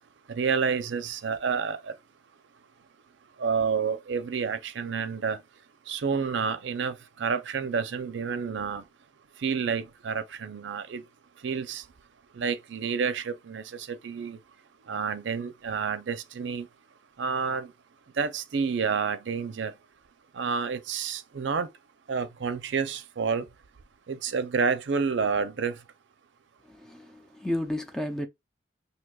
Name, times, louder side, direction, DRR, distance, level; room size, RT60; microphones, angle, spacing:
voice 1, 0.3-2.0 3.4-5.4 5.9-8.8 9.4-11.0 11.4-11.8 12.3-14.4 14.9-16.7 17.2-17.7 18.2-19.7 20.3-21.7 22.1-23.4 24.1-25.8, right 5 dB, 75° right, 0.5 m, -29 dB
voice 2, 26.7-28.3, left 1 dB, 5° left, 0.4 m, -32 dB
6.0 x 2.7 x 2.3 m
head